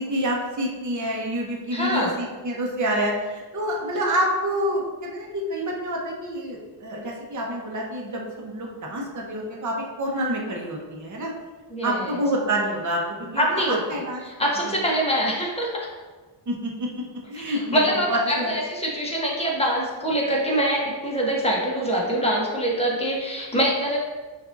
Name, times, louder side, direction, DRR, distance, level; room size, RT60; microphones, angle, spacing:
voice 1, 0.0-11.3 11.8-14.2 14.6-14.8 16.5-18.5, equal, 40° right, -2 dB, 0.9 m, -28 dB
voice 2, 1.7-2.1 11.7-12.2 13.4-14.0 14.2-15.9 17.4-24.0, equal, 15° left, -3 dB, 1.0 m, -24 dB
5.8 x 2.6 x 2.6 m, 1.3 s
cardioid pair, 85°, 47 cm